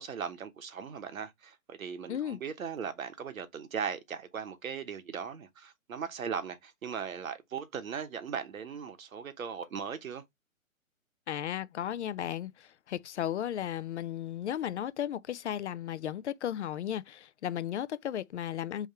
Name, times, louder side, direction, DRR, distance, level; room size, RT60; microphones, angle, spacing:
voice 1, 0.0-10.2, right 7 dB, 75° right, 1.1 m, -38 dB
voice 2, 11.3-18.9, left 10 dB, 60° left, 0.5 m, -35 dB
3.6 x 3.2 x 4.2 m
hypercardioid pair, 145°, 41 cm